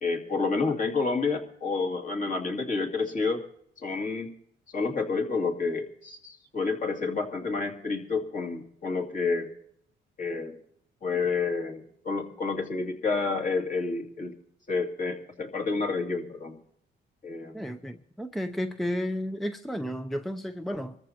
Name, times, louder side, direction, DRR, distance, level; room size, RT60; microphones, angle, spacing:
voice 1, 0.0-3.4 3.8-4.3 4.7-9.5 10.2-10.5 11.0-14.3 14.7-16.5 17.2-17.6, left 4 dB, 40° left, 2.5 m, -29 dB
voice 2, 17.5-21.0, equal, ahead, 0.6 m, -32 dB
24.5 x 14.0 x 2.9 m
cardioid pair, 90°, 20 cm